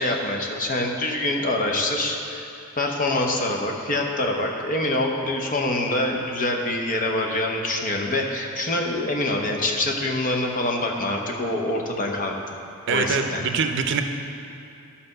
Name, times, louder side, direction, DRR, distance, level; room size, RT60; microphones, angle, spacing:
voice 1, 0.0-2.5 2.8-12.3 12.9-13.4, left 1 dB, 40° left, 1 dB, 0.9 m, -25 dB
voice 2, 12.9-14.0, right 5 dB, 55° right, 6 dB, 0.6 m, -24 dB
12.0 x 4.2 x 6.6 m, 2.6 s
head